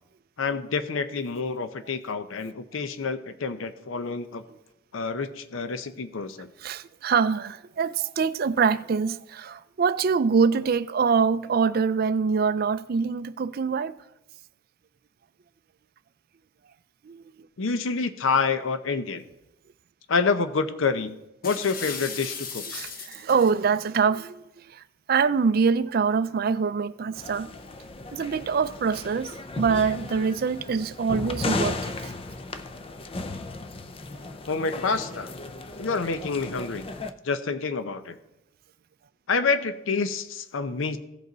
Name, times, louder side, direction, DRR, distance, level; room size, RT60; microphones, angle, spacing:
voice 1, 0.4-4.4 4.9-6.5 17.6-19.3 20.1-21.2 21.4-22.6 34.5-35.3 35.8-36.9 37.2-38.2 39.3-41.0, left 4 dB, 80° left, 0.6 m, -27 dB
voice 2, 6.6-14.0 17.0-17.2 22.7-27.5 28.1-32.1, right 5 dB, 50° right, 0.4 m, -24 dB
sound 1, 21.4-23.6, left 5 dB, 45° left, 1.0 m, -36 dB
sound 2, 27.1-37.1, left 3 dB, 25° left, 0.4 m, -35 dB
16.0 x 5.3 x 3.9 m
head